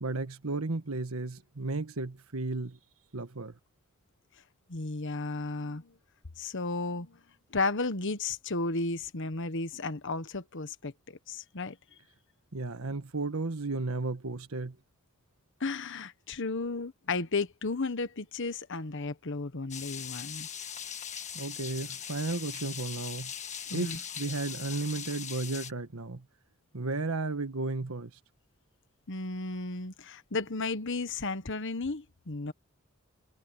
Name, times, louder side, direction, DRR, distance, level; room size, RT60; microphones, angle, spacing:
voice 1, 0.0-2.8 3.1-3.5 12.5-14.8 21.3-23.3 23.7-26.2 26.7-28.1, right 3 dB, 85° right, 1.4 m, -34 dB
voice 2, 4.7-5.9 6.4-7.2 7.5-10.9 11.3-11.8 15.6-20.5 23.7-24.0 29.1-32.5, left 3 dB, 60° left, 1.3 m, -33 dB
sound 1, 19.7-25.7, left 8 dB, 35° left, 1.6 m, -40 dB
head